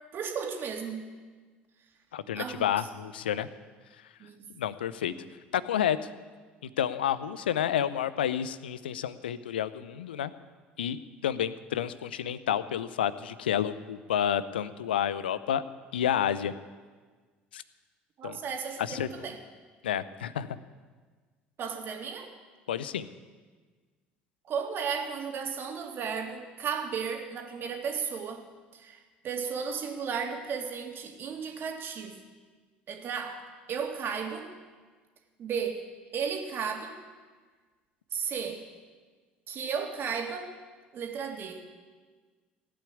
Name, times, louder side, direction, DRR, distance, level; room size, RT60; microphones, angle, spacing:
voice 1, 0.1-1.1 2.3-2.7 4.2-4.5 18.2-19.4 21.6-22.3 24.4-28.4 28.7-32.2 32.9-34.5 35.4-35.9 36.1-37.0 38.1-38.6 39.5-40.5 40.9-41.7, right 6 dB, 40° right, 3 dB, 2.3 m, -34 dB
voice 2, 2.1-3.5 4.6-5.1 5.5-6.1 6.6-10.3 10.8-15.6 15.9-16.5 17.5-17.6 18.2-18.4 18.8-19.1 19.8-20.5 22.7-23.1, left 10 dB, 75° left, 16 dB, 0.6 m, -30 dB
17.0 x 8.7 x 8.5 m, 1.4 s
figure-of-eight pair, 60°, 5 cm